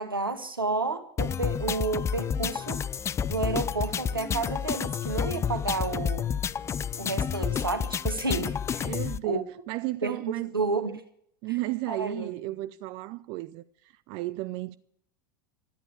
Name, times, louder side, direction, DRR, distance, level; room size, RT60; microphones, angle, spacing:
voice 1, 0.0-2.8 3.3-6.3 7.0-9.0 9.2-9.4 10.0-10.2 10.5-11.0 11.9-12.3, right 3 dB, 90° right, 1.6 m, -31 dB
sound 1, 1.2-9.2, left 8 dB, 25° left, 0.5 m, -30 dB
voice 2, 8.8-10.5 10.9-11.0 11.4-14.7, right 19 dB, 50° right, 0.5 m, -34 dB
13.0 x 11.0 x 8.5 m
figure-of-eight pair, 80°, 11 cm